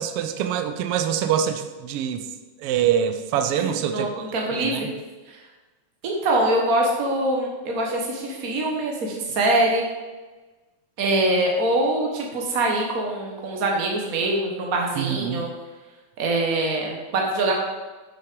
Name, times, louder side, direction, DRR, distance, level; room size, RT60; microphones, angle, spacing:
voice 1, 0.0-2.3 2.6-4.2 4.6-4.9 15.0-15.5, right 9 dB, 85° right, 8 dB, 1.3 m, -25 dB
voice 2, 3.6-4.1 4.3-4.9 5.3-5.4 6.0-9.8 11.0-15.5 16.2-17.6, right 1 dB, 65° right, 0 dB, 0.8 m, -23 dB
8.1 x 5.8 x 5.1 m, 1.2 s
omnidirectional pair, 3.3 m